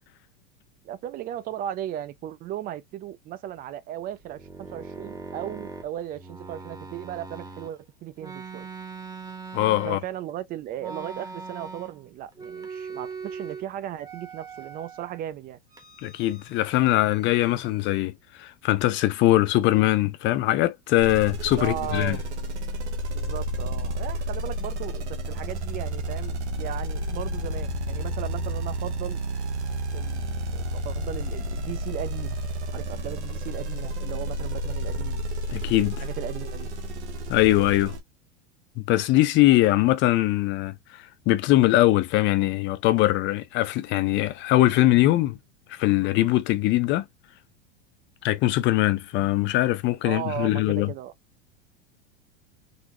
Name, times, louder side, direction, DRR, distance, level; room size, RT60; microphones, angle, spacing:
voice 1, 0.8-8.7 9.8-15.6 21.5-22.2 23.1-29.2 29.9-32.4 32.7-35.2 36.0-36.7 50.0-51.1, right 11 dB, 25° right, 0.4 m, -36 dB
sound 1, 4.1-7.7 8.2-10.3 10.8-12.1 12.3-13.6 14.0-15.2 15.7-16.6 16.9-18.1, right 4 dB, 10° right, 0.8 m, -41 dB
voice 2, 9.5-10.0 16.0-18.1 18.4-22.2 35.5-36.0 37.3-38.0 38.8-45.4 45.7-47.1 48.2-50.9, left 16 dB, 35° left, 0.5 m, -22 dB
sound 2, 21.0-38.0, right 1 dB, 90° right, 1.0 m, -31 dB
3.9 x 2.0 x 3.0 m
hypercardioid pair, 110°, 33 cm